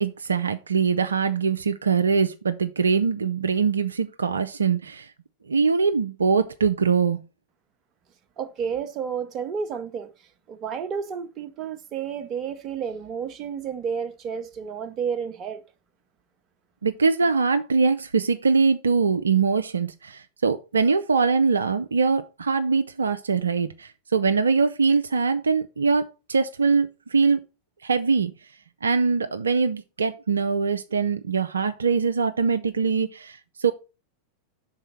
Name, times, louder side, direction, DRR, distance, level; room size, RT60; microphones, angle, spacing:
voice 1, 0.0-5.1 5.5-7.2 16.8-27.4 27.8-28.3 28.8-33.7, right 5 dB, 75° right, 0.4 m, -23 dB
voice 2, 8.4-15.6, right 7 dB, 30° right, 0.7 m, -31 dB
5.5 x 4.0 x 5.8 m
figure-of-eight pair, 90°, 0 cm